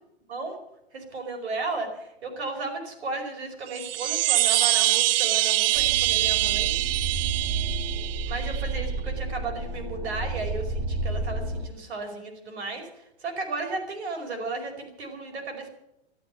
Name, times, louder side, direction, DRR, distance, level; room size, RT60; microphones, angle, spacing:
voice 1, 0.9-6.7 8.2-15.7, right 3 dB, 85° right, 4 dB, 5.2 m, -34 dB
sound 1, 3.7-8.7, right 16 dB, 60° right, 0.5 m, -24 dB
sound 2, 5.7-11.7, right 3 dB, 20° right, 2.1 m, -31 dB
12.5 x 12.5 x 9.0 m, 0.84 s
hypercardioid pair, 135°, 32 cm